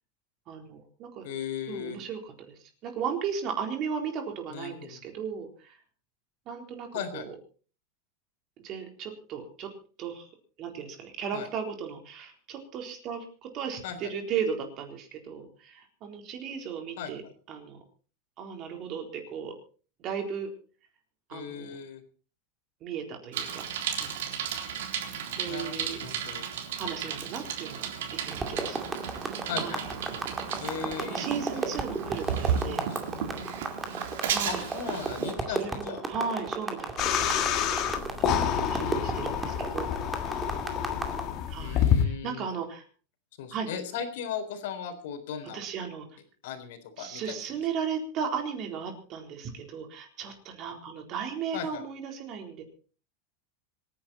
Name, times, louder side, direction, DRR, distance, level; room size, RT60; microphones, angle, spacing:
voice 1, 0.5-1.3 1.7-5.8 6.5-7.4 8.6-9.7 10.0-10.3 10.6-13.2 13.5-17.2 17.5-17.8 18.4-19.5 20.0-20.5 21.3-21.8 22.8-23.6 24.0-24.4 25.4-26.0 26.8-28.8 29.6-29.8 31.1-32.9 34.3-34.7 35.5-37.4 38.4-39.9 41.5-42.8 43.5-43.7 45.5-46.1 47.0-52.6, right 6 dB, 35° right, 4 dB, 3.9 m, -36 dB
voice 2, 1.2-2.0 4.5-5.0 6.9-7.3 11.3-11.5 13.8-14.1 17.0-17.3 21.3-22.0 25.4-26.5 29.5-30.0 30.6-31.8 32.3-32.4 32.7-33.5 34.5-36.0 38.8-39.3 41.6-42.5 43.4-45.6 46.4-47.4 51.5-51.8, left 7 dB, 70° left, 8 dB, 3.8 m, -37 dB
Bicycle, 23.3-35.3, right 8 dB, 85° right, 3.8 m, -34 dB
sound 1, 28.3-41.2, right 3 dB, 10° right, 2.3 m, -34 dB
sound 2, 37.0-42.0, left 9 dB, 35° left, 2.2 m, -28 dB
26.0 x 10.5 x 4.3 m, 0.39 s
supercardioid pair, 165°, 0 cm